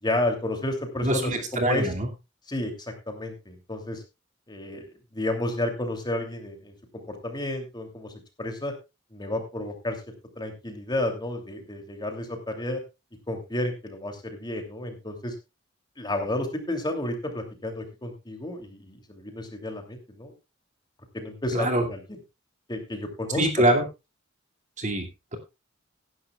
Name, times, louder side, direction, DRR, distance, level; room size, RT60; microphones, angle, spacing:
voice 1, 0.0-1.9 2.5-4.0 4.5-4.9 5.1-8.1 8.4-8.7 9.1-12.8 13.3-15.3 16.0-20.3 21.1-22.2 22.7-23.8, left 1 dB, 20° left, 4 dB, 2.9 m, -31 dB
voice 2, 1.0-2.1 21.5-21.8 23.3-23.8 24.8-25.4, right 1 dB, 40° right, 2 dB, 2.4 m, -24 dB
17.5 x 11.0 x 2.4 m, 0.25 s
head